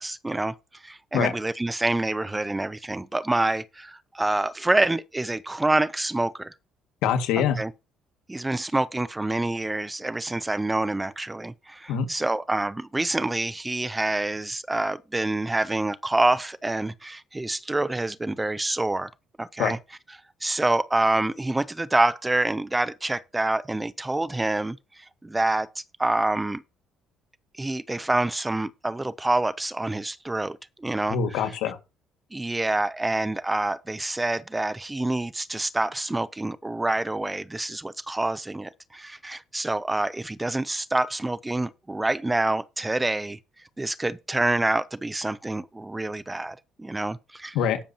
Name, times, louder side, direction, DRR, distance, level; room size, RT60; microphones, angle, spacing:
voice 1, 0.0-6.5 7.6-7.7 8.3-19.1 19.4-19.8 20.4-25.7 26.0-26.6 27.6-31.2 32.3-43.4 43.8-47.6, right 2 dB, 15° right, 0.6 m, -27 dB
voice 2, 7.0-7.6 11.9-12.1 19.6-19.7 31.1-31.8 47.5-47.8, left 8 dB, 85° left, 2.1 m, -24 dB
18.0 x 7.0 x 2.9 m
cardioid pair, 95°, 0 cm